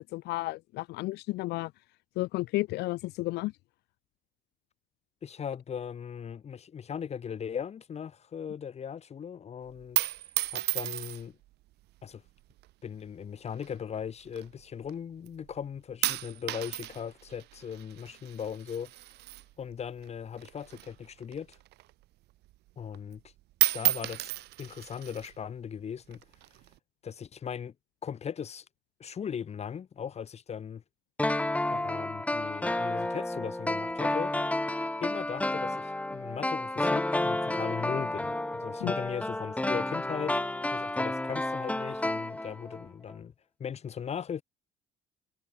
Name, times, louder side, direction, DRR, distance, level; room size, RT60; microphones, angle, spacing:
voice 1, 0.0-1.7 2.2-3.5 38.8-38.9, left 20 dB, 80° left, 0.5 m, -32 dB
voice 2, 5.2-10.0 10.5-11.4 12.0-12.2 12.8-18.9 19.6-21.6 22.8-23.2 23.7-24.3 24.6-26.2 27.0-27.7 28.0-28.7 29.0-30.8 31.7-34.3 35.0-40.4 40.7-43.3 43.6-44.4, left 7 dB, 40° left, 1.6 m, -38 dB
sound 1, 9.7-11.4 12.3-12.7 13.5-14.9 15.3-15.6 16.0-20.1 20.4-22.0 22.4-22.5 22.9-23.3 23.5-25.3 26.1-26.7, right 17 dB, 80° right, 1.9 m, -33 dB
sound 2, 31.2-42.8 43.1-43.2, left 1 dB, 10° left, 1.5 m, -31 dB
cardioid pair, 110°, 17 cm